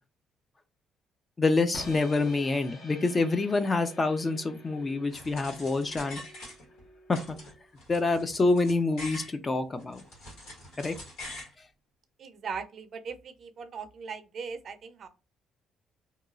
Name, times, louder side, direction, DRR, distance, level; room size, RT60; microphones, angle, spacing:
voice 1, 1.4-6.2 7.1-7.4 7.9-10.0 10.8-11.0, left 3 dB, 25° left, 9 dB, 0.4 m, -27 dB
sound 1, 1.7-7.7, left 1 dB, 50° left, 0.7 m, -49 dB
sound 2, 5.1-6.8 7.1-9.3 9.8-11.5, left 1 dB, 85° left, 1.4 m, -44 dB
voice 2, 12.2-15.1, right 6 dB, 45° right, 9 dB, 0.4 m, -39 dB
2.9 x 2.3 x 2.5 m, 0.29 s
cardioid pair, 130°, 0 cm